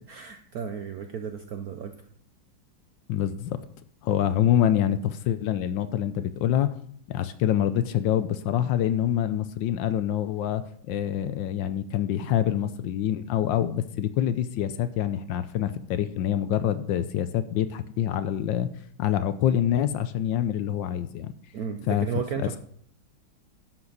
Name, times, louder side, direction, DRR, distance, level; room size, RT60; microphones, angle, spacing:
voice 1, 0.1-1.9 21.5-22.6, right 7 dB, 70° right, 7 dB, 0.8 m, -34 dB
voice 2, 3.1-3.6 4.0-6.7 7.1-18.7 19.0-21.3 21.9-22.6, left 10 dB, 75° left, 12 dB, 1.2 m, -26 dB
11.5 x 7.7 x 4.0 m, 0.62 s
omnidirectional pair, 2.3 m